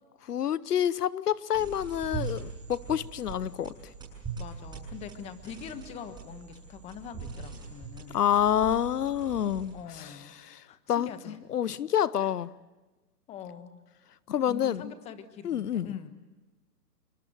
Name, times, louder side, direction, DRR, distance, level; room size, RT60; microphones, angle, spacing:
voice 1, 0.2-3.9 8.1-12.5 14.3-14.9 15.4-16.1, left 10 dB, 70° left, 19 dB, 0.9 m, -28 dB
sound 1, 1.5-9.9, right 5 dB, 10° right, 7.5 m, -41 dB
voice 2, 4.4-8.2 9.7-10.4 10.7-11.4 12.2-12.3 13.3-13.7 14.5-16.1, left 7 dB, 15° left, 10 dB, 1.3 m, -43 dB
29.0 x 24.0 x 7.9 m, 1.2 s
hypercardioid pair, 150°, 49 cm